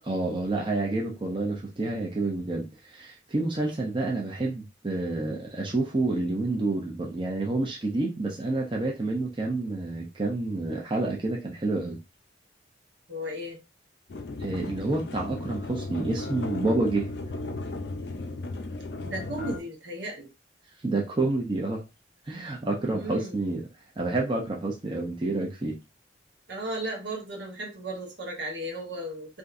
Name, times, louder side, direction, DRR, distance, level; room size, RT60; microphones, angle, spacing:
voice 1, 0.0-12.0 14.4-17.1 20.8-21.8 22.3-23.6 24.0-25.8, right 2 dB, 25° right, 0.7 m, -29 dB
voice 2, 13.1-13.6 19.0-20.3 22.9-23.5 26.5-29.4, right 1 dB, 75° right, 1.1 m, -35 dB
sound 1, 14.1-19.6, left 2 dB, 65° left, 0.5 m, -35 dB
3.5 x 2.7 x 2.5 m
head